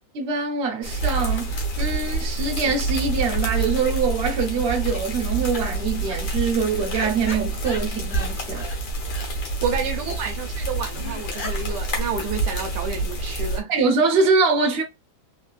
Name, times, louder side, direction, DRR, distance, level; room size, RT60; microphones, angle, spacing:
voice 1, 0.1-8.7 13.7-14.8, right 4 dB, 50° right, 0.8 m, -23 dB
sound 1, 0.8-13.6, right 2 dB, 90° left, 1.8 m, -27 dB
sound 2, 2.4-4.0 4.3-4.4 4.8-5.0 5.5-5.6 5.9-6.2 6.6-8.3 8.6-8.8 9.1-9.3 9.6-9.7 9.9-10.0 10.3-10.4 10.6-10.7 10.9-13.0, left 2 dB, 65° left, 0.5 m, -38 dB
voice 2, 9.6-13.7, right 6 dB, 70° right, 1.1 m, -29 dB
3.7 x 2.4 x 2.4 m
omnidirectional pair, 2.0 m